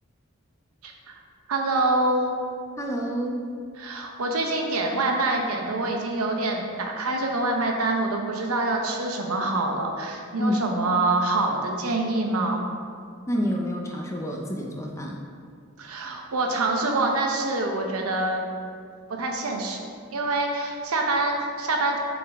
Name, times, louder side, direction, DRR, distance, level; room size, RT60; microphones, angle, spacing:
voice 1, 0.8-1.2 1.5-2.4 3.8-12.7 15.8-18.5 19.1-19.8 20.1-22.0, right 2 dB, 85° right, 1 dB, 0.8 m, -25 dB
voice 2, 2.8-3.4 10.4-10.7 13.3-15.2, equal, 15° left, 0 dB, 0.5 m, -28 dB
7.2 x 3.9 x 3.5 m, 2.2 s
head